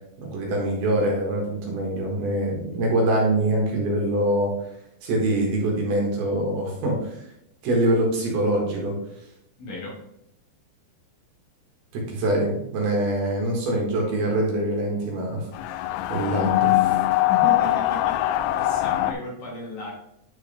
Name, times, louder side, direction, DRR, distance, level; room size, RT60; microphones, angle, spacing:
voice 1, 0.2-4.5 5.0-7.1 7.6-9.0 11.9-15.5 16.1-16.9, right 1 dB, 65° right, -1 dB, 3.2 m, -24 dB
voice 2, 9.6-10.0 17.3-18.3 18.5-19.9, left 1 dB, 55° left, -5 dB, 2.9 m, -34 dB
sound 1, 15.5-19.1, left 15 dB, 90° left, 2.9 m, -22 dB
9.6 x 4.8 x 3.4 m, 0.79 s
omnidirectional pair, 5.2 m